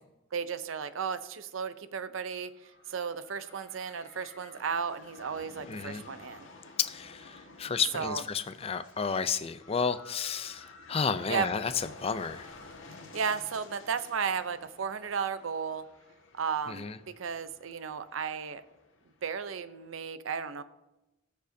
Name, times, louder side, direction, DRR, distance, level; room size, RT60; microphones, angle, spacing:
voice 1, 0.3-2.5 2.9-6.5 7.9-8.2 11.3-11.5 13.1-15.9 16.3-18.6 19.2-20.6, right 6 dB, 85° right, 13 dB, 0.6 m, -34 dB
sound 1, 2.3-19.9, left 3 dB, 75° left, 1.5 m, -53 dB
voice 2, 5.7-6.0 6.8-12.5 16.7-17.0, left 6 dB, 30° left, 12 dB, 0.4 m, -32 dB
19.5 x 6.6 x 2.7 m, 1.0 s
head